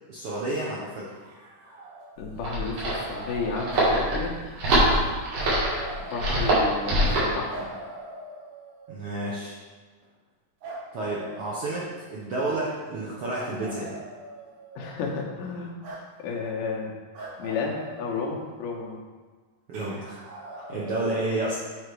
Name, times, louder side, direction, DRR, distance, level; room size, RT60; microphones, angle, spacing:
voice 1, 0.1-1.1 8.9-9.5 10.9-13.9 19.7-20.2 20.7-21.6, right 2 dB, 75° right, -6 dB, 1.3 m, -30 dB
sound 1, 1.1-2.5 2.8-4.5 5.4-6.9 7.5-9.1 10.6-12.3 13.3-15.0 15.8-16.0 17.1-18.8 19.7-20.9, right 2 dB, 60° right, 2.4 m, -42 dB
voice 2, 2.2-4.3 6.1-7.7 14.8-15.7 16.2-16.9 17.4-19.0 20.6-20.8, left 4 dB, 80° left, -1 dB, 2.6 m, -32 dB
sound 2, 2.2-7.4, right 1 dB, 90° right, 3.4 m, -24 dB
7.9 x 3.9 x 4.6 m, 1.4 s
omnidirectional pair, 3.7 m